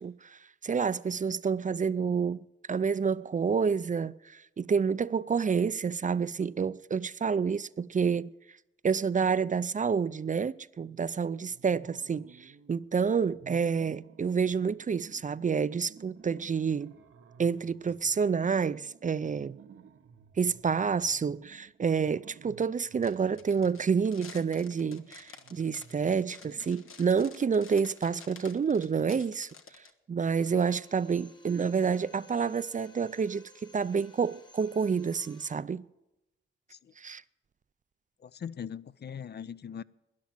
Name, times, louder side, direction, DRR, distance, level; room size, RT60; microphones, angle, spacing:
voice 1, 0.0-2.4 2.7-8.3 8.8-16.9 17.4-19.6 20.4-29.8 30.1-35.8 37.0-37.2, right 6 dB, 40° right, 0.4 m, -29 dB
sound 1, 11.5-12.9 13.2-27.1, right 7 dB, 85° right, 0.9 m, -55 dB
sound 2, 23.0-29.9, left 5 dB, 80° left, 1.1 m, -51 dB
Drill, 30.4-35.7, left 2 dB, 20° left, 1.2 m, -57 dB
voice 2, 38.2-39.8, left 8 dB, 55° left, 0.4 m, -40 dB
12.5 x 10.5 x 7.5 m
cardioid pair, 65°, 21 cm